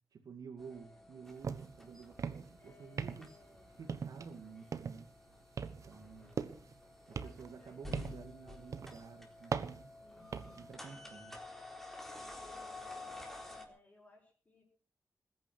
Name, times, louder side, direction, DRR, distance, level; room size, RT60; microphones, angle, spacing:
voice 1, 0.1-3.3 3.8-5.1 5.7-6.4 7.1-9.9 10.6-11.4, right 5 dB, 80° right, 3 dB, 2.1 m, -51 dB
sound 1, 0.6-13.7, left 2 dB, 5° left, 3.9 m, -51 dB
voice 2, 0.7-1.0 2.5-3.7 6.2-6.6 7.1-8.0 10.0-11.2 12.4-12.7 13.6-14.6, left 3 dB, 25° left, -4 dB, 5.7 m, -65 dB
sound 2, 1.4-1.8 2.1-2.6 3.0-3.4 3.9-4.3 4.7-5.1 5.6-6.8 7.1-8.3 8.7-9.0 9.5-10.7, right 6 dB, 60° right, 1.3 m, -40 dB
20.5 x 10.5 x 6.2 m, 0.42 s
wide cardioid pair, 160°, 6 cm